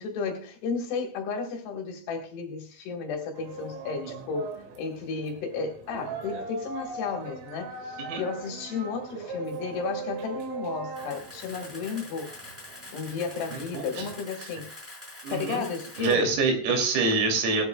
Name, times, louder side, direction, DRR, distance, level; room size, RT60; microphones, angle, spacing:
voice 1, 0.0-12.5 12.9-14.7 15.3-16.4, left 5 dB, 65° left, 3.2 m, -33 dB
sound 1, 3.4-14.3, right 4 dB, 75° right, 4.5 m, -40 dB
Camera, 10.9-16.1, left 2 dB, 5° right, 4.2 m, -45 dB
voice 2, 15.2-15.6 16.0-17.7, right 3 dB, 90° right, 5.6 m, -25 dB
19.5 x 12.0 x 2.3 m
omnidirectional pair, 6.0 m